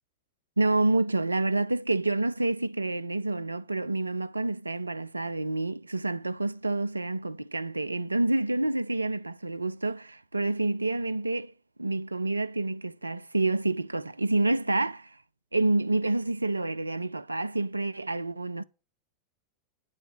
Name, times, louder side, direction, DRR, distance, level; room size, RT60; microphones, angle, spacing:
voice 1, 0.6-11.5 11.8-15.2 15.5-18.6, right 2 dB, 85° right, 0.3 m, -28 dB
8.7 x 4.8 x 6.7 m
figure-of-eight pair, 90°, 0 cm